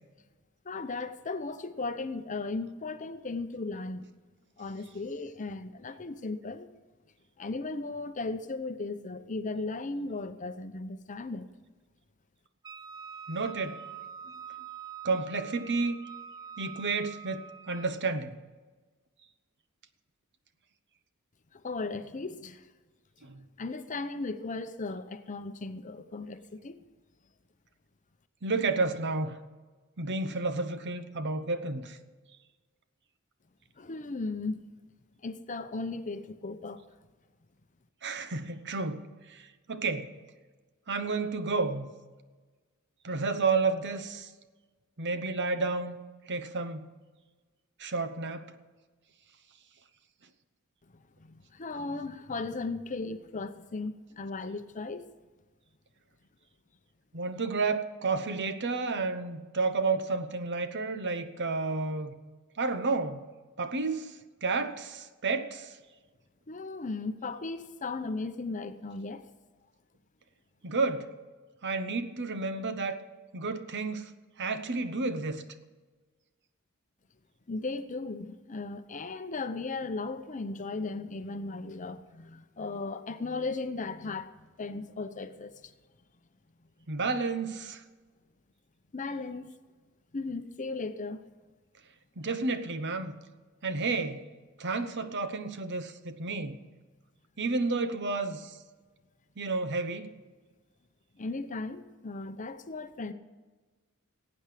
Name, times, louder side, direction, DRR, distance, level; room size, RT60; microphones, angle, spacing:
voice 1, 0.6-4.1 4.6-6.7 7.4-11.4 21.5-22.7 23.6-26.8 33.8-34.6 35.2-36.8 51.2-55.0 66.5-69.2 77.5-85.7 88.9-89.5 90.1-91.2 101.2-103.1, left 3 dB, 35° left, 0.8 m, -36 dB
Wind instrument woodwind instrument, 12.6-18.0, right 7 dB, 20° right, 0.5 m, -45 dB
voice 2, 13.3-13.9 15.0-16.0 16.6-18.3 23.2-23.5 28.4-29.4 30.0-32.0 38.0-40.1 40.9-41.9 43.0-44.3 45.0-46.0 46.3-46.8 47.8-48.5 57.1-62.1 62.6-63.3 63.6-65.8 70.6-71.1 71.6-73.0 73.3-75.4 86.9-87.8 92.2-93.2 93.6-94.3 94.6-96.6 97.4-98.6 99.4-100.2, right 3 dB, 55° right, 1.0 m, -31 dB
18.5 x 8.8 x 5.0 m
head